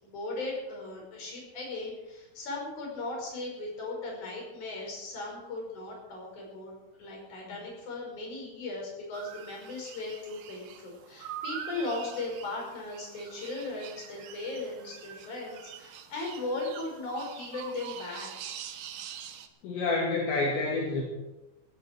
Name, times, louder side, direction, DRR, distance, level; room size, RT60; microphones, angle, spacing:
voice 1, 0.0-6.7 7.0-18.3, left 2 dB, 40° left, -1 dB, 6.8 m, -37 dB
sound 1, 9.1-19.5, right 9 dB, 75° right, 2.0 m, -44 dB
voice 2, 19.6-21.0, left 3 dB, 70° left, -3 dB, 4.7 m, -28 dB
17.0 x 17.0 x 4.6 m, 1.0 s
omnidirectional pair, 5.6 m